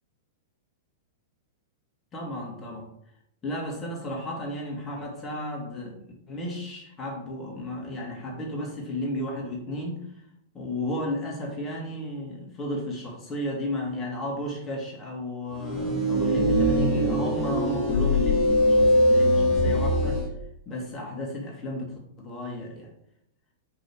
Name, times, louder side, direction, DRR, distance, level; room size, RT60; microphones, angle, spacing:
voice 1, 2.1-2.9 3.4-6.0 6.3-10.1 10.5-20.2 20.7-22.9, left 1 dB, 20° left, -1 dB, 2.2 m, -33 dB
sound 1, 15.6-20.3, equal, 5° left, 2.3 m, -22 dB
5.5 x 5.3 x 4.7 m, 0.77 s
figure-of-eight pair, 100°, 0 cm